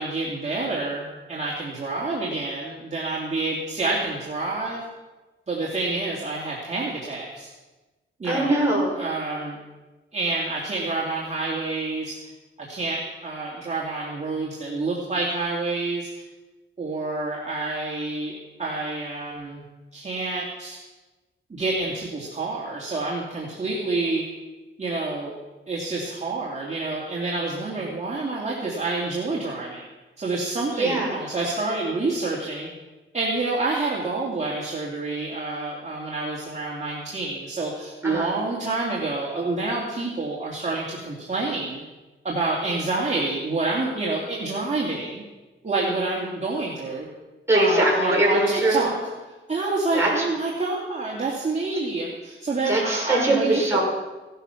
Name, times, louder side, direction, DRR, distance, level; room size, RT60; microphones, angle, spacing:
voice 1, 0.0-4.8 5.5-7.5 8.2-8.6 9.0-9.6 10.1-12.2 12.6-16.1 16.8-19.6 19.9-20.8 21.5-24.2 24.8-25.3 25.7-29.8 30.2-32.7 33.1-41.8 42.2-45.2 45.6-47.1 47.5-49.0 49.5-53.8, right 3 dB, 35° right, -5 dB, 2.7 m, -28 dB
voice 2, 8.2-9.0 30.7-31.2 38.0-38.3 47.5-48.9 49.9-50.3 52.7-53.8, right 1 dB, 10° right, -4 dB, 6.1 m, -22 dB
16.5 x 12.0 x 5.9 m, 1.2 s
wide cardioid pair, 115°, 21 cm